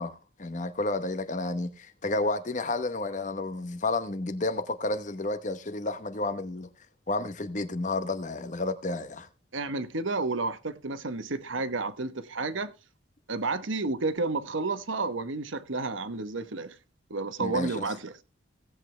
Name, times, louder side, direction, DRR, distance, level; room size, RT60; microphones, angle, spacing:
voice 1, 0.0-6.7 7.1-9.3 17.4-17.9, left 2 dB, 40° left, 1.0 m, -31 dB
voice 2, 9.5-12.7 13.3-16.7 17.1-18.1, right 3 dB, 75° right, 1.1 m, -31 dB
17.0 x 8.4 x 3.3 m
head